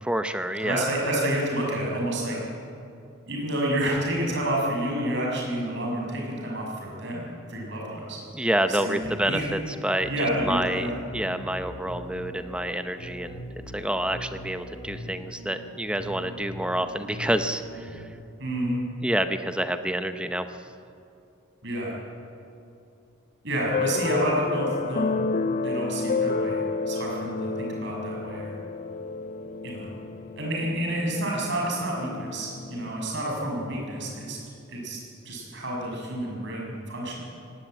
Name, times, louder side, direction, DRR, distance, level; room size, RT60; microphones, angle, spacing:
voice 1, 0.0-0.8 8.3-10.1 10.5-13.4 13.7-18.0 19.0-20.4, right 1 dB, 5° right, 9 dB, 0.6 m, -28 dB
voice 2, 0.6-2.4 3.3-8.2 8.7-9.5 10.1-10.9 18.4-18.9 21.6-21.9 23.4-25.1 25.6-28.5 29.6-29.9 30.3-34.4 34.7-35.0 35.2-37.3, right 1 dB, 55° right, -2 dB, 6.4 m, -29 dB
sound 1, 9.0-18.1, equal, 85° left, 3.4 m, -41 dB
sound 2, 23.7-32.9, left 3 dB, 40° left, 0.4 m, -30 dB
18.5 x 17.5 x 9.0 m, 2.7 s
head